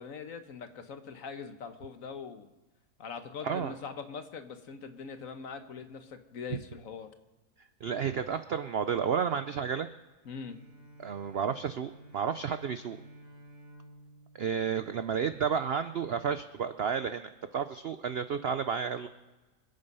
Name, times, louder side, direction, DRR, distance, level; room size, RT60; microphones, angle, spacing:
voice 1, 0.0-2.5 3.0-7.1 10.2-10.6, left 5 dB, 55° left, 8 dB, 1.3 m, -42 dB
voice 2, 7.8-9.9 11.0-13.0 14.3-19.1, right 7 dB, 75° right, 11 dB, 0.5 m, -31 dB
Bowed string instrument, 10.2-15.6, right 1 dB, 50° right, 3.6 m, -54 dB
25.5 x 8.8 x 5.5 m, 1.2 s
omnidirectional pair, 1.8 m